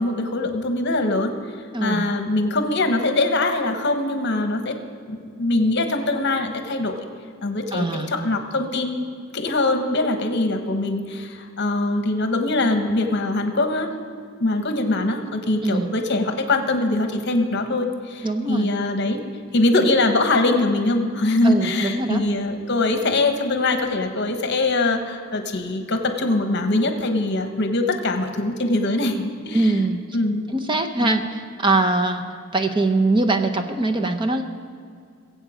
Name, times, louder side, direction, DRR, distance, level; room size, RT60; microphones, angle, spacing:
voice 1, 0.0-1.4 1.8-4.8 5.1-7.1 7.4-9.0 9.3-13.9 14.4-19.2 19.5-29.7 30.1-30.5 31.0-31.2, left 2 dB, 50° left, 7 dB, 1.1 m, -22 dB
voice 2, 1.7-2.0 7.7-8.1 15.6-15.9 18.2-18.7 21.4-22.2 29.5-30.0 30.5-32.2 32.5-34.4, right 2 dB, 20° right, 6 dB, 0.7 m, -22 dB
22.0 x 7.9 x 5.0 m, 2.2 s
head